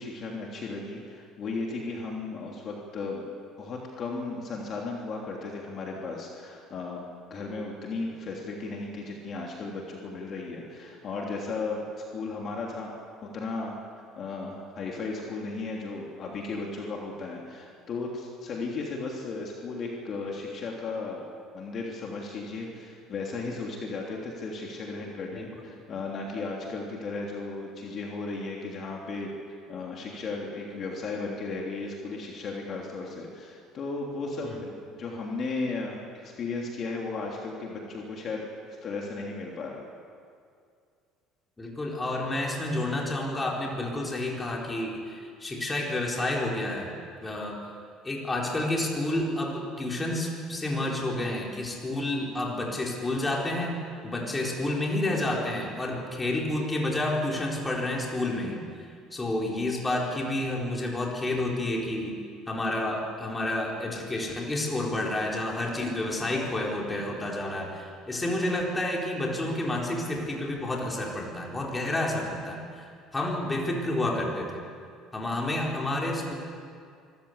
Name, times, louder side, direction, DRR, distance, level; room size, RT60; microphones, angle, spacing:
voice 1, 0.0-3.2 3.6-12.9 13.2-21.2 21.5-29.3 29.7-38.5 38.8-39.8, left 3 dB, 45° left, -1 dB, 3.2 m, -35 dB
voice 2, 41.6-46.9 47.2-47.6 48.0-53.8 54.0-58.6 59.1-62.1 62.5-72.9 73.1-74.5 75.1-76.3, left 1 dB, 15° left, -2 dB, 4.3 m, -30 dB
24.5 x 14.5 x 8.3 m, 2.2 s
cardioid pair, 115°, 0 cm